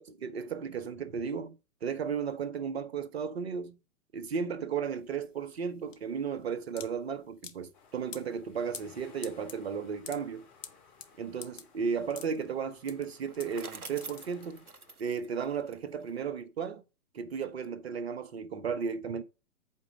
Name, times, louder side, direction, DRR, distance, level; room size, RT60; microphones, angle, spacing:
voice 1, 0.1-3.8 4.1-10.5 11.2-14.6 15.0-16.8 17.1-19.2, right 6 dB, 45° right, 1.0 m, -34 dB
sound 1, 4.8-14.8, left 6 dB, 60° left, 1.1 m, -48 dB
sound 2, 7.7-15.0, left 5 dB, 30° left, 2.5 m, -59 dB
Bicycle, 13.0-16.2, right 4 dB, 80° right, 0.8 m, -47 dB
8.3 x 4.9 x 6.2 m
figure-of-eight pair, 120°, 43 cm